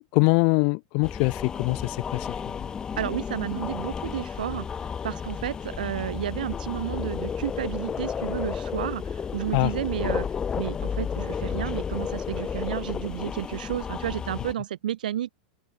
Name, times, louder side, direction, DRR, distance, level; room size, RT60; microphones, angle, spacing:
voice 1, 0.1-2.6 9.5-9.7, left 40 dB or more, 45° left, 3.1 m, -23 dB
sound 1, 1.0-14.5, left 7 dB, 15° left, 6.2 m, -32 dB
voice 2, 3.0-10.3 10.5-15.3, right 11 dB, 85° right, 4.3 m, -32 dB
supercardioid pair, 150°, 4 cm